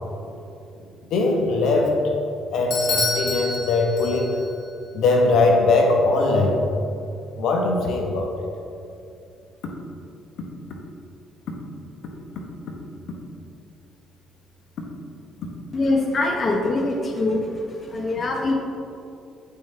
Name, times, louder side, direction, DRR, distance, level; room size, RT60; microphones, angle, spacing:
voice 1, 1.1-2.1 2.5-4.4 4.9-6.7 7.4-8.5, left 3 dB, 70° left, 1 dB, 1.0 m, -20 dB
Bell / Doorbell, 2.7-4.6, left 3 dB, 55° left, 1.4 m, -27 dB
voice 2, 15.7-17.4 17.8-18.5, left 2 dB, 40° left, 1 dB, 0.8 m, -23 dB
8.4 x 5.7 x 3.3 m, 2.6 s
cardioid pair, 85°, 0 cm